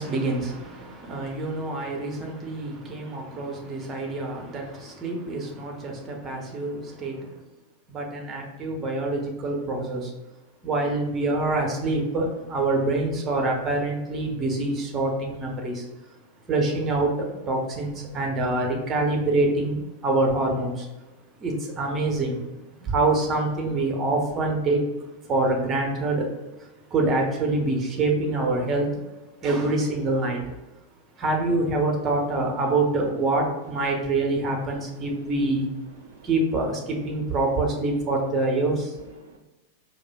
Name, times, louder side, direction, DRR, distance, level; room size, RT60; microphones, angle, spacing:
voice 1, 0.0-7.3 7.9-10.1 10.6-15.9 16.5-20.9 21.4-22.5 22.8-24.8 25.3-26.3 26.9-28.9 29.4-30.5 31.2-35.7 36.2-38.9, right 2 dB, 25° right, 1 dB, 0.8 m, -26 dB
voice 2, 33.8-34.3 34.7-35.3 35.9-36.3 39.0-39.4, right 4 dB, 65° right, 1 dB, 0.3 m, -52 dB
4.7 x 2.3 x 2.3 m, 1.1 s
figure-of-eight pair, 90°, 0 cm